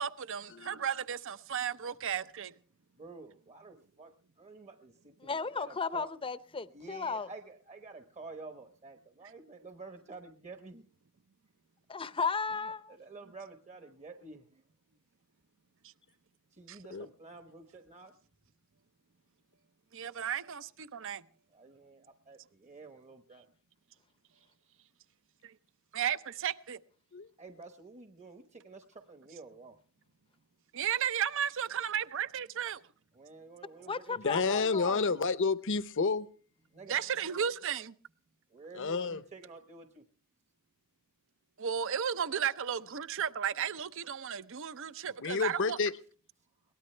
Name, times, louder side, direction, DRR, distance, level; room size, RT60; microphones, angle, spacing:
voice 1, 0.0-2.5 16.7-16.8 19.9-21.2 25.4-25.5 25.9-26.8 30.7-32.8 36.9-37.9 41.6-45.8, right 8 dB, 60° right, 0.7 m, -34 dB
voice 2, 3.0-6.1 6.7-10.8 12.6-14.4 16.5-18.1 21.5-23.5 27.4-29.8 33.1-34.7 36.7-37.5 38.5-40.0, right 3 dB, 30° right, 1.0 m, -50 dB
voice 3, 5.2-7.3 11.9-12.9 33.9-35.1, left 5 dB, 25° left, 0.7 m, -35 dB
voice 4, 34.2-36.3 38.7-39.2 45.2-45.9, left 4 dB, 60° left, 0.8 m, -30 dB
22.0 x 18.0 x 3.3 m
head